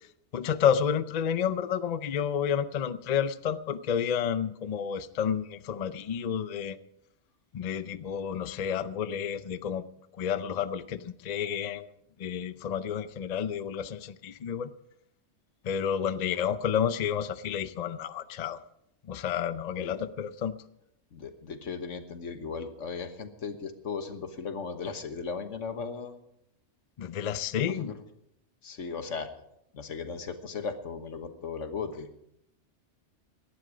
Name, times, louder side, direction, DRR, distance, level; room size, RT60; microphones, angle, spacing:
voice 1, 0.3-6.8 7.5-9.9 10.2-11.9 12.2-14.7 15.6-18.6 19.1-20.6 27.0-27.9, left 8 dB, 45° left, 14 dB, 0.6 m, -30 dB
voice 2, 21.1-26.1 27.7-28.0 28.6-29.3 29.7-32.1, left 5 dB, 90° left, 8 dB, 1.6 m, -37 dB
17.5 x 11.5 x 5.0 m, 0.78 s
omnidirectional pair, 1.2 m